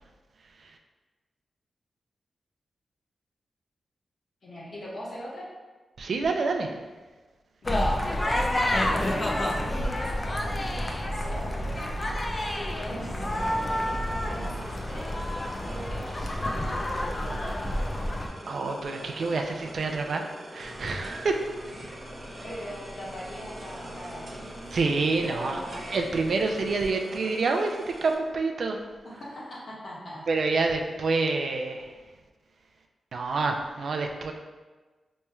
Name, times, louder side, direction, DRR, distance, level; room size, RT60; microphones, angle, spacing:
voice 1, 4.4-5.5 7.6-7.9 9.0-11.4 12.7-15.2 15.6-16.3 22.4-24.8 25.2-25.9 29.0-30.2, equal, 65° left, -6 dB, 1.2 m, -40 dB
voice 2, 6.0-6.7 18.5-20.2 20.5-21.4 22.3-22.4 24.7-25.6 25.9-28.8 30.3-31.9 33.1-34.3, right 3 dB, 70° right, 3 dB, 0.4 m, -27 dB
sound 1, 7.6-18.3, left 1 dB, 30° left, 0.4 m, -29 dB
sound 2, 13.3-28.1, right 1 dB, 30° right, 0.6 m, -44 dB
sound 3, 20.6-26.9, equal, 50° right, 1.0 m, -45 dB
4.3 x 3.1 x 2.3 m, 1.3 s
cardioid pair, 70°, 0 cm